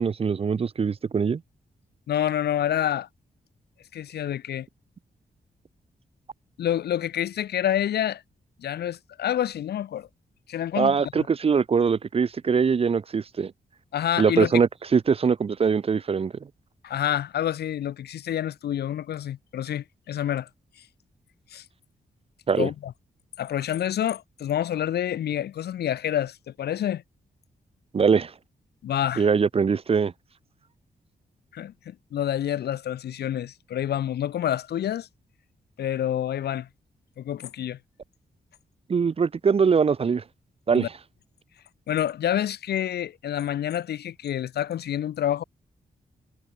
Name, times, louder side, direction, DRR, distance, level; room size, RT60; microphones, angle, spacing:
voice 1, 0.0-1.4 10.8-13.5 14.2-16.3 22.5-22.7 27.9-28.3 29.2-30.1 38.9-40.2 40.7-40.9, right 6 dB, 35° right, 0.5 m, -22 dB
voice 2, 2.1-3.1 3.9-4.7 6.6-8.2 8.6-10.1 10.5-11.0 13.9-14.6 16.8-20.5 21.5-21.6 22.6-22.9 23.4-27.0 28.8-29.3 31.5-35.1 35.8-36.7 37.2-37.8 40.7-40.9 41.9-45.4, left 11 dB, 80° left, 0.6 m, -28 dB
wide cardioid pair, 110°, 17 cm